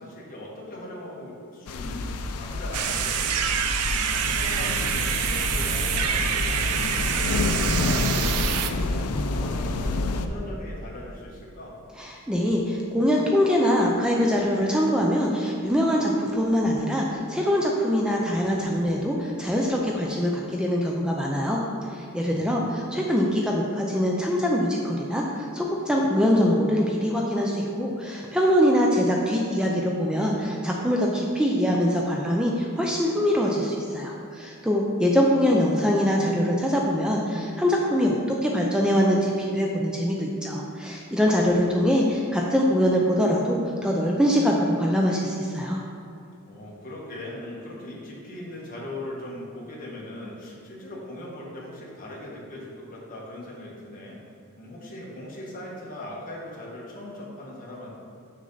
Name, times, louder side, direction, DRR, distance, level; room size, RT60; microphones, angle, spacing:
voice 1, 0.0-9.8 10.1-11.8 22.1-22.8 41.5-42.0 46.5-54.2 54.6-57.9, left 1 dB, 40° left, -4 dB, 1.6 m, -40 dB
sound 1, 1.7-10.3, left 2 dB, 80° left, 0.5 m, -28 dB
sound 2, 2.7-8.7, right 8 dB, 90° right, 0.5 m, -26 dB
voice 2, 12.0-21.6 21.9-45.8, equal, 5° right, -2 dB, 0.5 m, -23 dB
6.6 x 6.4 x 3.9 m, 2.7 s
head